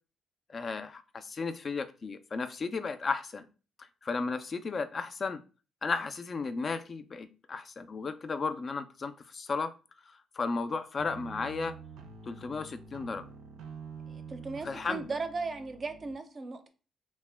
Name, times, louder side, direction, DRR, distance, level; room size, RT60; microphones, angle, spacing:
voice 1, 0.5-3.5 4.0-5.4 5.8-9.7 10.0-11.8 12.2-13.2 14.6-15.1, left 4 dB, 40° left, 0.3 m, -34 dB
sound 1, 11.0-16.1, right 5 dB, 85° right, 0.5 m, -47 dB
voice 2, 14.1-16.7, right 4 dB, 40° right, 0.5 m, -37 dB
2.8 x 2.1 x 3.3 m
cardioid pair, 90°, 0 cm